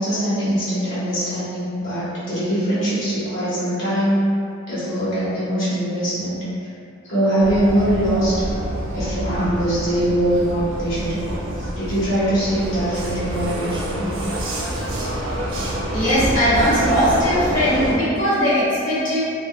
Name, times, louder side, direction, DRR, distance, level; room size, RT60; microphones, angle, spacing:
voice 1, 0.0-4.2 4.7-6.4 7.0-8.4 8.9-11.3 11.6-14.1, right 1 dB, 65° left, -11 dB, 1.3 m, -22 dB
Vehicle, 7.4-18.0, right 1 dB, 65° right, 0.5 m, -27 dB
voice 2, 15.9-19.2, equal, 40° left, -10 dB, 1.0 m, -19 dB
2.8 x 2.7 x 2.2 m, 2.4 s
head